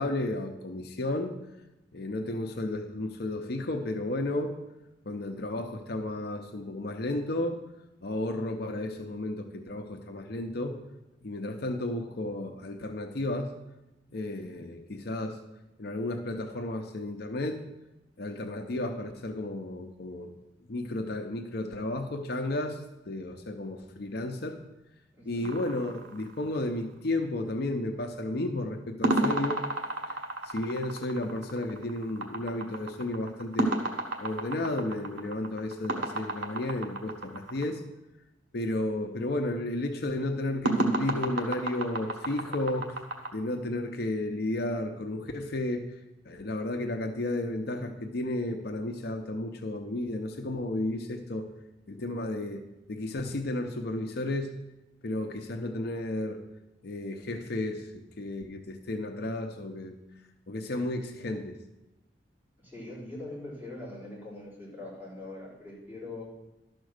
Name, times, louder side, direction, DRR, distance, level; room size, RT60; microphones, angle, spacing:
voice 1, 0.0-1.3 1.9-4.5 5.1-7.6 8.0-10.8 11.2-13.6 14.1-15.4 15.8-17.6 18.2-20.3 20.7-22.8 23.1-24.6 25.3-29.6 30.1-30.2 30.4-33.8 34.2-37.8 38.5-42.9 43.3-45.8 46.3-51.5 51.9-54.6 55.0-56.4 56.8-60.0 60.5-61.6, left 1 dB, 60° left, 4 dB, 0.7 m, -33 dB
voice 2, 25.2-25.5 62.6-66.3, left 2 dB, 10° right, -8 dB, 4.0 m, -42 dB
sound 1, 25.4-26.8 29.0-37.6 40.6-43.3, right 2 dB, 85° right, 1.3 m, -32 dB
12.0 x 4.4 x 6.5 m, 0.96 s
head